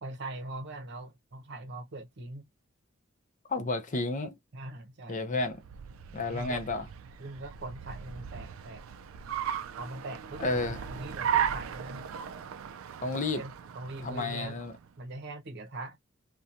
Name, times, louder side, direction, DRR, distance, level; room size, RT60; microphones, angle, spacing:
voice 1, 0.0-2.4 4.5-5.4 6.3-6.6 7.2-8.8 9.8-12.0 13.3-14.6 15.0-16.0, right 2 dB, 55° right, 0.7 m, -41 dB
voice 2, 3.5-4.4 5.1-5.6 6.1-6.8 10.4-10.8 13.0-13.4 14.0-14.8, left 2 dB, 40° left, 0.6 m, -31 dB
Car, 5.4-14.9, right 9 dB, 80° right, 0.3 m, -36 dB
2.8 x 2.2 x 2.5 m
head